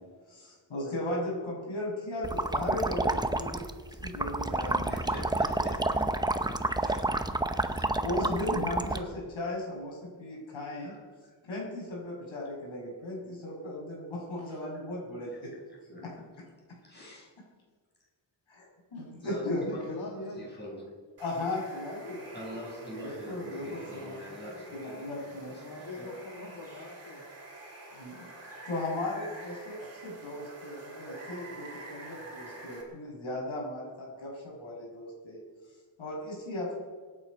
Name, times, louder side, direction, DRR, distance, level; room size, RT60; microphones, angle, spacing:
voice 1, 0.3-5.1 6.5-6.9 7.4-10.9 11.4-15.3 18.5-18.6 18.9-19.7 21.2-22.3 22.8-24.1 24.8-25.6 26.0-26.1 27.9-28.3 28.6-35.4 35.7-36.8, left 1 dB, 80° left, -3 dB, 6.0 m, -37 dB
sound 1, 2.2-9.0, right 2 dB, 10° right, 0.6 m, -29 dB
voice 2, 4.8-6.4 6.7-7.3 10.8-11.0 15.3-15.6 15.9-16.3 16.8-17.3 19.2-19.4 19.7-19.8 20.4-20.9 22.3-25.1 25.4-25.6, equal, 20° left, -4 dB, 5.7 m, -45 dB
voice 3, 19.4-20.5 23.4-23.7 24.2-24.7 25.5-27.2, left 2 dB, 55° left, -2 dB, 2.1 m, -42 dB
Water, 21.2-32.8, right 2 dB, 30° right, 3.2 m, -47 dB
24.5 x 9.8 x 5.3 m, 1.5 s
wide cardioid pair, 170°, 46 cm